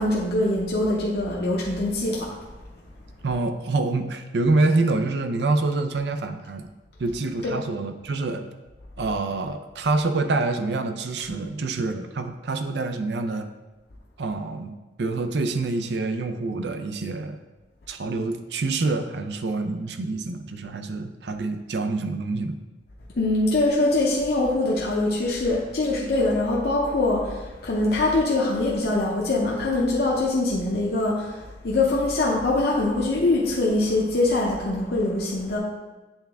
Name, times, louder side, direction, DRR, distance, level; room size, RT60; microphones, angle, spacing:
voice 1, 0.0-2.3 23.2-31.4 31.6-35.6, left 2 dB, 60° left, -4 dB, 0.7 m, -23 dB
voice 2, 3.2-6.6 7.0-8.4 9.0-13.5 14.2-14.7 15.0-17.4 17.9-22.6, right 3 dB, 70° right, 7 dB, 0.5 m, -26 dB
8.0 x 3.4 x 3.5 m, 1.2 s
head